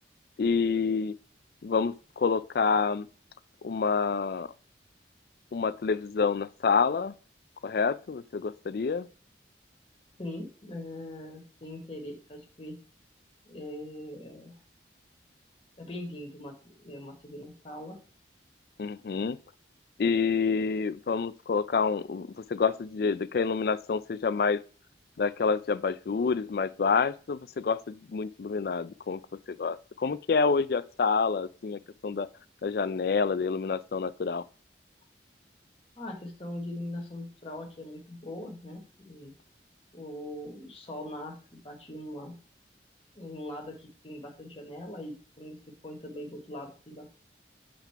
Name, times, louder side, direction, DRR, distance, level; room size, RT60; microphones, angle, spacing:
voice 1, 0.4-1.1 1.6-3.1 3.6-4.5 5.5-7.1 7.6-9.1 18.8-19.4 20.0-24.6 25.2-29.2 29.6-32.3 32.6-34.4, left 5 dB, 55° left, 0.4 m, -28 dB
voice 2, 10.2-12.8 13.4-14.6 15.8-18.0 36.0-39.3 39.9-42.3 43.1-47.1, left 1 dB, 30° left, 1.3 m, -41 dB
7.3 x 3.7 x 4.6 m
head